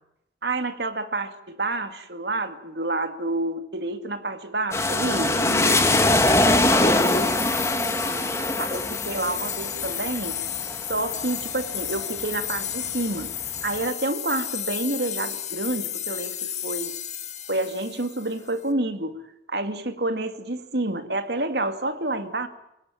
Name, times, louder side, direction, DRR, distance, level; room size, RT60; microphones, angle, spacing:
voice 1, 0.4-5.4 8.0-10.4 10.9-13.3 13.6-16.9 17.5-19.2 19.5-22.5, right 2 dB, 65° right, 8 dB, 2.3 m, -29 dB
sound 1, 4.7-12.4 12.8-13.6, left 2 dB, 15° left, 1.7 m, -23 dB
voice 2, 5.3-7.4, left 1 dB, 75° left, 6 dB, 2.9 m, -33 dB
sound 2, 6.6-18.6, left 10 dB, 40° left, 1.7 m, -33 dB
27.0 x 18.0 x 9.1 m, 0.84 s
head